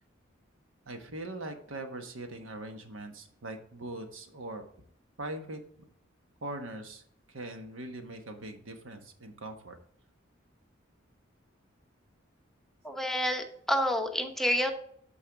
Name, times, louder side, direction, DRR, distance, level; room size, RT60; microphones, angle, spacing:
voice 1, 0.9-4.6 5.2-5.9 6.4-7.0 7.3-9.8, right 2 dB, 90° right, 6 dB, 1.3 m, -41 dB
voice 2, 12.8-14.7, equal, ahead, 4 dB, 0.9 m, -28 dB
13.0 x 4.7 x 3.6 m, 0.62 s
head